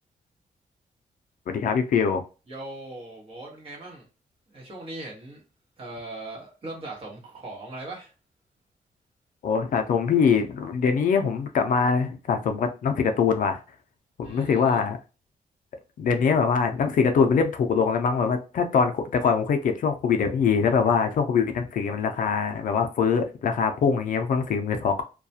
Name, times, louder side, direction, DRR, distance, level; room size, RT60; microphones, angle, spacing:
voice 1, 1.5-2.2 9.4-13.6 14.2-15.0 16.0-25.0, left 6 dB, 65° left, 6 dB, 0.4 m, -23 dB
voice 2, 2.5-4.0 4.5-5.4 5.8-8.1 14.2-14.8, right 2 dB, 40° right, -3 dB, 1.1 m, -39 dB
2.3 x 2.2 x 2.7 m, 0.32 s
wide cardioid pair, 160°, 15 cm